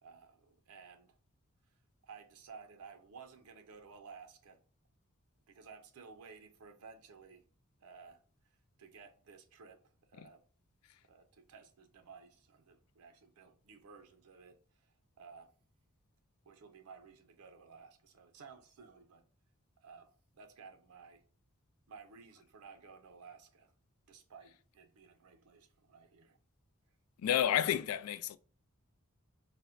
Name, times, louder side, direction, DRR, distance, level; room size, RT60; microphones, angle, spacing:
voice 1, 0.0-1.2 2.0-4.6 5.5-7.4 7.8-8.2 8.8-9.8 10.1-10.4 11.1-14.6 14.8-15.5 16.4-19.2 19.8-21.2 21.9-23.7 24.1-26.4, right 5 dB, 90° right, 0.5 m, -55 dB
voice 2, 27.2-28.4, left 10 dB, 80° left, 0.3 m, -31 dB
4.0 x 2.1 x 2.4 m
head